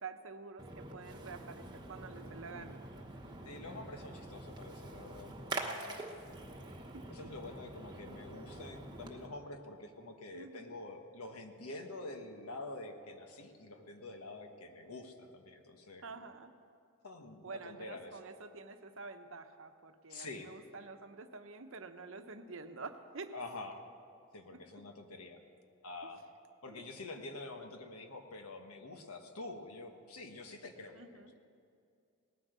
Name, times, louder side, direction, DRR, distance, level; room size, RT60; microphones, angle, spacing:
voice 1, 0.0-2.8 6.3-6.4 6.9-7.1 10.3-10.8 16.0-16.5 17.4-23.3 24.5-24.8 30.9-31.3, right 4 dB, 65° right, 8 dB, 0.8 m, -48 dB
Splash splatter, 0.6-9.3, right 2 dB, 20° right, 1.1 m, -46 dB
voice 2, 3.4-5.3 5.6-6.0 7.1-16.2 17.0-18.2 20.1-20.5 23.3-23.8 24.3-25.4 25.8-26.2 26.6-31.4, left 2 dB, 90° left, 5 dB, 1.4 m, -47 dB
18.5 x 9.9 x 6.7 m, 2.5 s
head